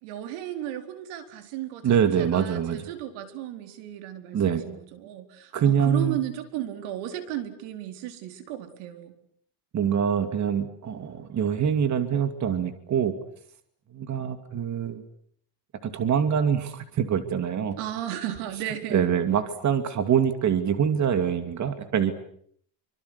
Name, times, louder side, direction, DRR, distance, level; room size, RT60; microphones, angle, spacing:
voice 1, 0.0-9.2 17.8-19.1, right 12 dB, 85° right, 8 dB, 4.5 m, -35 dB
voice 2, 1.8-2.9 4.3-4.6 5.5-6.2 9.7-13.1 13.9-15.0 15.8-17.8 18.9-22.1, right 8 dB, 35° right, 9 dB, 2.6 m, -24 dB
27.5 x 25.0 x 8.3 m, 0.64 s
cardioid pair, 145°, 49 cm